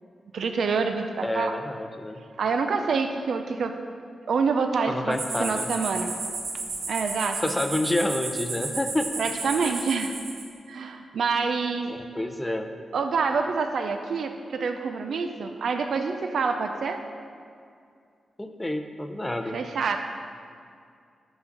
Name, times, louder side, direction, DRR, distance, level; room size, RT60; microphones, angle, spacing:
voice 1, 0.3-1.6 2.4-3.7 4.3-6.1 6.9-7.4 9.2-10.2 10.7-11.9 12.9-17.0 19.5-20.0, right 5 dB, 70° right, 6 dB, 0.5 m, -27 dB
voice 2, 1.2-2.2 4.9-5.7 7.4-9.1 9.6-9.8 11.9-12.7 18.4-19.6, left 1 dB, 10° left, 6 dB, 0.6 m, -28 dB
sound 1, 5.1-10.4, right 3 dB, 85° right, 1.5 m, -33 dB
11.0 x 3.9 x 7.2 m, 2.3 s
wide cardioid pair, 135°, 0 cm